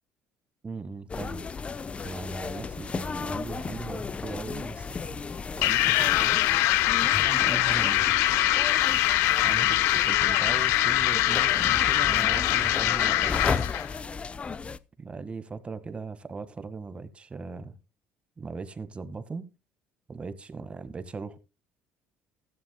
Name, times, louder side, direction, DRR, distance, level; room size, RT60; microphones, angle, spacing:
voice 1, 0.6-1.5 2.0-5.3 5.5-6.4 7.0-8.2 9.4-13.6 15.0-17.8 18.4-19.5 20.1-21.4, right 4 dB, 25° right, 1.7 m, -39 dB
sound 1, 1.1-14.8, left 5 dB, 30° left, 0.8 m, -33 dB
sound 2, 5.6-13.9, left 16 dB, 80° left, 0.8 m, -23 dB
14.5 x 13.0 x 2.3 m
supercardioid pair, 95°, 4 cm